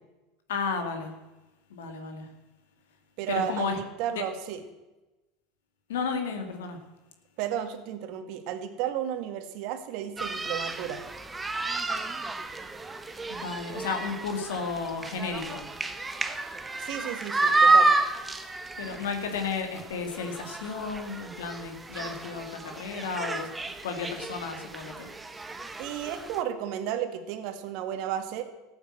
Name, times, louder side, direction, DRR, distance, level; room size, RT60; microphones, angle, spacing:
voice 1, 0.5-1.1 1.7-2.3 3.3-3.8 4.1-4.2 5.9-6.8 13.3-15.7 18.8-23.5 23.8-25.1, left 5 dB, 85° left, 5 dB, 2.2 m, -33 dB
voice 2, 3.2-3.7 4.0-4.6 7.4-11.0 16.8-17.9 25.8-28.4, right 10 dB, 65° right, 8 dB, 1.9 m, -33 dB
sound 1, 10.2-26.4, right 3 dB, 15° right, 1.3 m, -30 dB
14.5 x 8.7 x 7.8 m, 1.1 s
supercardioid pair, 100°, 0 cm